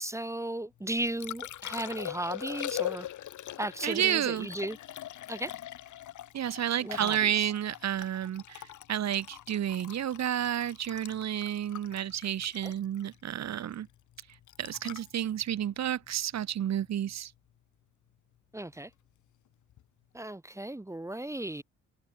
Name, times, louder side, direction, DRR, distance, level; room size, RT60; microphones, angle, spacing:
voice 1, 0.0-3.1 3.6-4.8 5.3-5.5 6.8-7.5 12.6-12.7 18.5-18.9 20.1-21.6, right 1 dB, 10° right, 2.0 m, -35 dB
Liquid, 0.8-16.9 19.7-19.8, left 12 dB, 75° left, 5.4 m, -42 dB
voice 2, 3.8-4.5 6.3-13.9 14.6-17.3, right 10 dB, 60° right, 2.4 m, -31 dB
cardioid pair, 90°, 30 cm